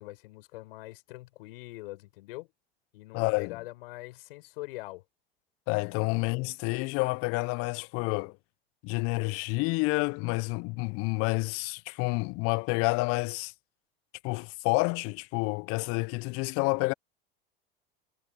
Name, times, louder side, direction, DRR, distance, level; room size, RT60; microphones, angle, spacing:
voice 1, 0.0-2.5 2.9-5.0, left 20 dB, 70° left, 6.8 m, -43 dB
voice 2, 3.1-3.6 5.7-8.3 8.8-13.5 14.2-16.9, left 29 dB, 50° left, 0.6 m, -29 dB
hypercardioid pair, 85°, 30 cm